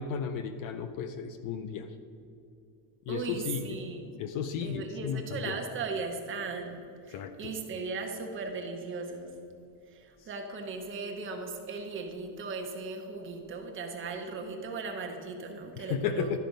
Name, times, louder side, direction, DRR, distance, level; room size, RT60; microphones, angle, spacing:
voice 1, 0.0-1.9 3.1-3.8 4.2-5.5 7.1-7.5 15.9-16.4, left 7 dB, 45° left, 9 dB, 0.4 m, -34 dB
voice 2, 3.1-4.2 4.6-9.3 9.9-16.4, right 4 dB, 25° right, 3 dB, 0.8 m, -37 dB
12.0 x 4.9 x 5.2 m, 2.6 s
cardioid pair, 170°, 45 cm